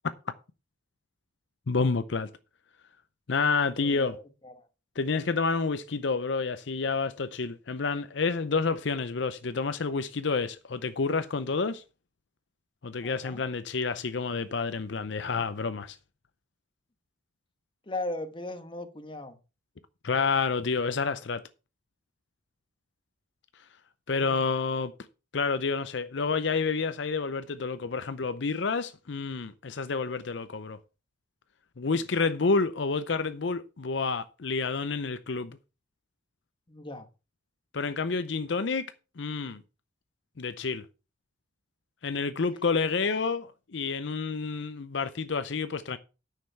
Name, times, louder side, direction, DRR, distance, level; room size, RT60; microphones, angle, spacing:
voice 1, 1.7-2.3 3.3-4.1 5.0-11.8 12.8-16.0 20.0-21.4 24.1-24.9 25.3-30.8 31.8-35.6 37.7-38.9 39.2-39.6 40.4-40.8 42.0-46.0, left 4 dB, 65° left, 0.6 m, -29 dB
voice 2, 3.8-4.7 13.0-13.4 17.8-19.4 24.2-24.5 31.9-32.1 36.7-37.1, left 2 dB, 25° left, 1.2 m, -38 dB
9.6 x 6.7 x 5.6 m
head